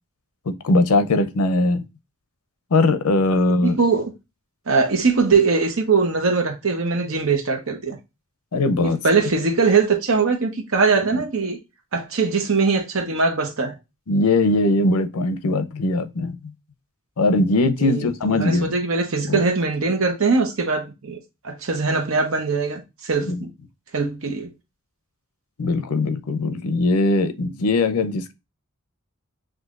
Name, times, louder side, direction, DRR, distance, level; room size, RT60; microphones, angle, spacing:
voice 1, 0.5-1.9 2.7-3.8 8.5-9.0 11.1-11.2 14.1-16.5 17.2-18.7 19.3-19.4 23.2-23.4 25.6-28.3, left 2 dB, 85° left, 0.6 m, -20 dB
voice 2, 3.3-4.1 4.7-8.0 8.8-11.6 11.9-13.7 17.8-21.2 21.4-23.5 23.9-24.5, right 4 dB, 65° right, 0.9 m, -21 dB
6.0 x 2.6 x 2.4 m
head